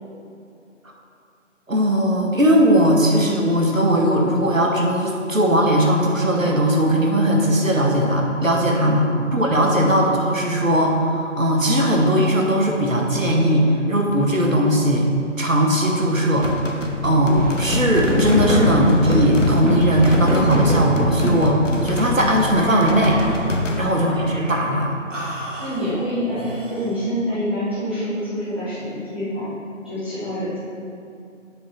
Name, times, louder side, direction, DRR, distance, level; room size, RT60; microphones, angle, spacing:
voice 1, 1.7-15.1 15.4-16.6 17.0-23.2 23.8-24.9, equal, 90° right, 0 dB, 1.4 m, -18 dB
voice 2, 8.7-9.1 9.5-9.9 23.6-23.9 25.6-30.6, equal, 10° right, -15 dB, 0.8 m, -27 dB
sound 1, 16.4-23.8, left 2 dB, 70° left, 0.9 m, -27 dB
sound 2, 17.0-21.5 22.3-23.6 24.1-24.7 25.1-26.9, equal, 70° right, 1.7 m, -25 dB
7.2 x 4.9 x 4.4 m, 2.5 s
figure-of-eight pair, 155°, 39 cm